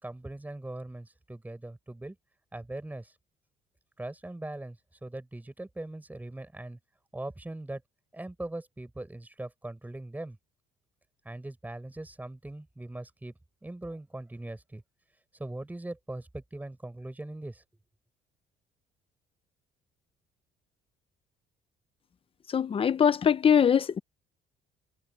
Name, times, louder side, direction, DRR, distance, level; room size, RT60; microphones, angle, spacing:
voice 1, 0.0-2.2 2.5-3.1 4.0-6.8 7.1-7.8 8.1-10.4 11.2-13.3 13.6-14.8 15.4-17.6, right 2 dB, 10° right, 6.3 m, -40 dB
voice 2, 22.5-24.0, left 8 dB, 35° left, 0.8 m, -22 dB
cardioid pair, 110°, 17 cm